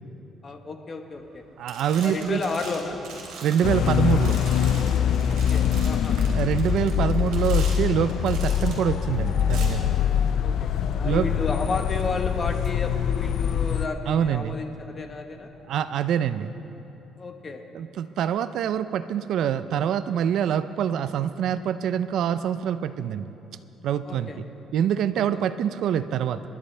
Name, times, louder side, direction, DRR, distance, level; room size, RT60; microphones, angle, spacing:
voice 1, 0.4-1.4 2.0-3.0 5.3-6.2 10.4-10.5 11.0-15.5 17.2-17.6 24.0-24.4 25.1-25.2, left 3 dB, 30° left, 5 dB, 1.2 m, -32 dB
sound 1, 1.2-1.4 1.7-8.9 9.4-9.7, right 4 dB, 90° right, 3.4 m, -41 dB
voice 2, 1.6-2.4 3.4-4.4 6.3-9.9 11.0-11.3 14.1-14.6 15.7-16.5 17.7-23.3 23.8-24.5 24.7-26.4, right 9 dB, 65° right, 12 dB, 0.5 m, -25 dB
sound 2, 3.6-13.9, left 9 dB, 65° left, 0.5 m, -24 dB
25.5 x 11.0 x 3.3 m, 2.9 s
cardioid pair, 130°, 0 cm